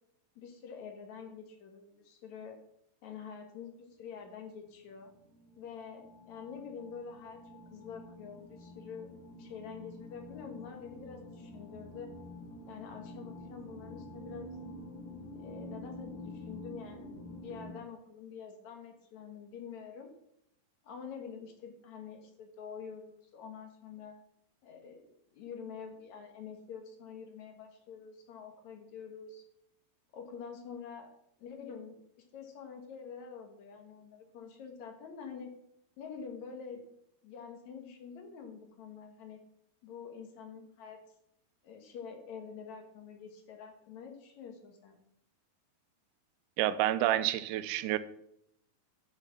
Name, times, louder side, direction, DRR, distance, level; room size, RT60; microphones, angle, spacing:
voice 1, 0.4-2.6 3.0-5.1 5.6-7.4 7.7-9.1 9.4-12.1 12.7-14.6 15.4-20.1 20.8-24.1 24.6-25.0 25.3-29.4 30.1-31.1 31.4-32.0 32.3-35.6 36.0-36.8 37.2-39.4 39.8-41.0 41.6-45.0, left 6 dB, 55° left, 5 dB, 2.4 m, -46 dB
sound 1, 4.3-4.4 4.6-17.7, left 1 dB, 85° left, 4.0 m, -48 dB
voice 2, 46.6-48.0, right 13 dB, 85° right, 13 dB, 2.6 m, -29 dB
10.0 x 7.0 x 5.9 m, 0.76 s
omnidirectional pair, 4.5 m